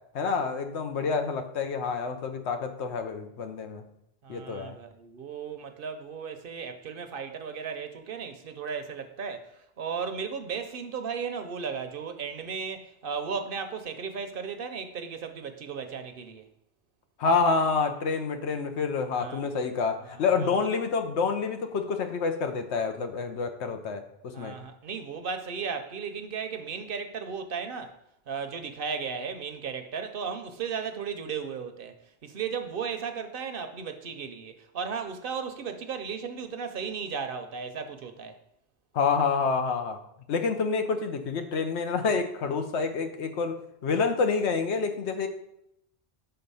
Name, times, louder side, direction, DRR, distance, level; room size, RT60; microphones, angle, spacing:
voice 1, 0.1-3.9 4.3-4.8 17.2-24.0 24.4-24.6 38.9-40.0 40.3-45.3, left 5 dB, 80° left, 1.0 m, -28 dB
voice 2, 4.2-16.4 19.1-19.5 20.0-20.8 24.3-28.0 28.3-32.0 32.2-38.4, right 6 dB, 60° right, 0.7 m, -35 dB
6.8 x 3.8 x 5.5 m
omnidirectional pair, 1.1 m